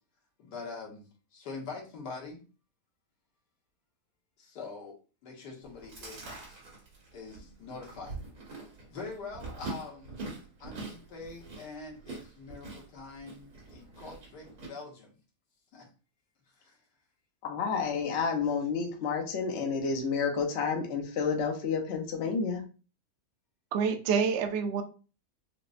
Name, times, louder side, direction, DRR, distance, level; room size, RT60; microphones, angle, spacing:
voice 1, 0.4-2.4 4.4-5.0 5.2-6.6 7.1-8.2 8.9-10.2 10.6-15.1 15.7-15.9 16.6-16.8, left 4 dB, 80° left, 1.6 m, -44 dB
Chewing mastication, 5.6-14.7, right 3 dB, 70° right, 2.2 m, -44 dB
voice 2, 17.4-22.7, left 5 dB, 55° left, 0.8 m, -30 dB
voice 3, 23.7-24.8, right 6 dB, 85° right, 0.6 m, -27 dB
4.9 x 2.0 x 2.5 m
omnidirectional pair, 1.8 m